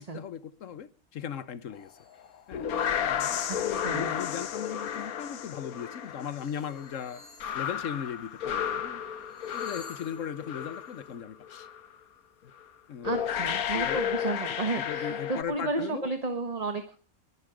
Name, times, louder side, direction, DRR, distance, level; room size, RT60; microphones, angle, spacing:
voice 1, 0.0-1.9 2.5-2.7 3.0-7.2 7.5-9.0 9.5-11.7 12.4-12.5 12.9-13.2 13.7-14.1 14.5-16.1, left 8 dB, 65° left, 1.2 m, -38 dB
sound 1, 1.7-2.5 2.9-3.5 3.8-5.1 5.6-5.7 6.0-8.7 9.0-11.1, left 2 dB, 5° left, 5.5 m, -57 dB
sound 2, 2.2-11.1 11.4-11.8 12.6-12.7 13.0-15.4, left 9 dB, 90° left, 1.4 m, -33 dB
voice 2, 13.0-17.0, right 3 dB, 30° right, 1.4 m, -32 dB
21.5 x 9.8 x 5.1 m
omnidirectional pair, 1.5 m